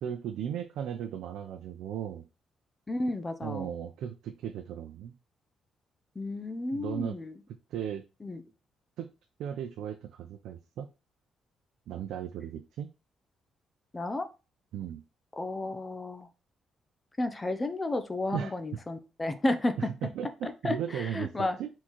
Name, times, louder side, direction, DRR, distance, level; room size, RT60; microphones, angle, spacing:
voice 1, 0.0-2.2 3.4-5.1 6.7-7.2 7.7-8.0 9.0-9.1 9.4-10.9 11.9-12.9 14.7-15.0 18.3-18.5 20.0-21.7, right 9 dB, 85° right, 5 dB, 0.4 m, -36 dB
voice 2, 2.9-3.7 6.2-7.4 8.2-8.4 13.9-14.3 15.4-16.3 17.2-19.9 20.4-21.6, left 2 dB, 15° left, 9 dB, 0.5 m, -32 dB
4.4 x 3.7 x 3.0 m, 0.30 s
cardioid pair, 150°, 0 cm